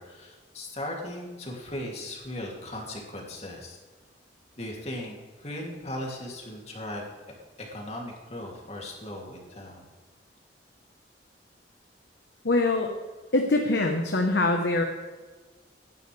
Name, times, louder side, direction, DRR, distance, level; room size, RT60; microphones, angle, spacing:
voice 1, 0.0-3.8 4.6-7.0 7.6-9.8, left 1 dB, 35° left, -1 dB, 2.8 m, -37 dB
voice 2, 12.4-12.9 13.3-14.8, left 2 dB, 75° left, 3 dB, 1.1 m, -23 dB
16.5 x 11.5 x 3.4 m, 1.4 s
head